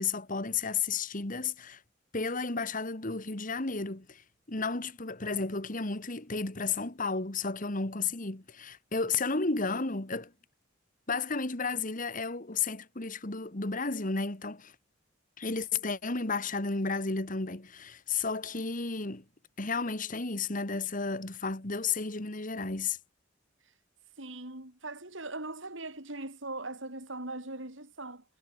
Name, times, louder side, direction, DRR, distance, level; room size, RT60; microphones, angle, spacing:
voice 1, 0.0-1.8 2.1-10.3 11.1-14.7 15.4-19.2 19.6-23.0, left 4 dB, 45° left, 2.0 m, -33 dB
voice 2, 24.2-28.2, right 2 dB, 70° right, 6.0 m, -40 dB
head